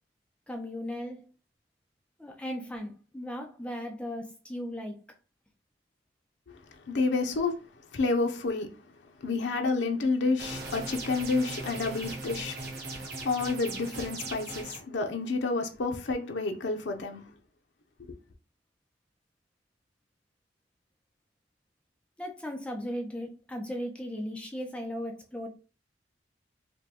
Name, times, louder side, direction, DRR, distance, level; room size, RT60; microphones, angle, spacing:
voice 1, 0.5-1.3 2.2-5.0 22.2-25.5, equal, 5° left, 0.5 m, -37 dB
voice 2, 6.9-7.6 7.9-8.7 9.2-12.6 12.8-17.2 18.1-18.2, left 3 dB, 75° left, 0.6 m, -29 dB
sound 1, 10.4-14.8, right 2 dB, 65° right, 1.0 m, -39 dB
5.0 x 2.2 x 2.9 m
head